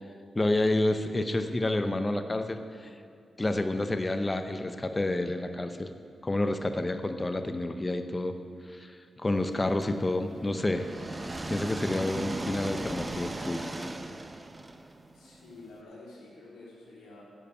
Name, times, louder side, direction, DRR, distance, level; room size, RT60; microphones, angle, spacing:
voice 1, 0.3-2.6 3.4-5.9 6.2-8.4 8.7-10.9 11.5-13.6, left 2 dB, 25° left, 8 dB, 0.8 m, -29 dB
sound 1, 9.8-15.7, right 2 dB, 25° right, 0.8 m, -38 dB
voice 2, 15.1-17.2, left 2 dB, 85° left, -5 dB, 3.5 m, -49 dB
11.0 x 6.8 x 8.6 m, 2.4 s
cardioid pair, 55°, 0 cm